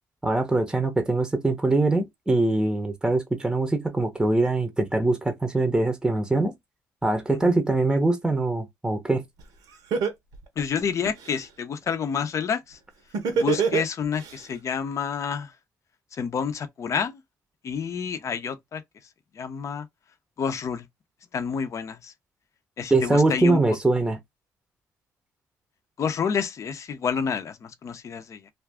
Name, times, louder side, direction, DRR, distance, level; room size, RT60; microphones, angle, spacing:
voice 1, 0.2-6.5 7.0-9.2 22.9-24.2, right 2 dB, 10° right, 0.8 m, -23 dB
Laughter, 9.4-9.5 9.9-11.4 13.1-14.3, right 6 dB, 80° right, 1.0 m, -24 dB
voice 2, 10.6-12.8 13.3-15.5 16.1-17.2 17.6-18.8 19.3-19.9 20.4-20.9 21.3-22.1 22.8-23.6 26.0-28.5, left 6 dB, 50° left, 0.6 m, -29 dB
2.6 x 2.4 x 3.4 m
cardioid pair, 80°, 7 cm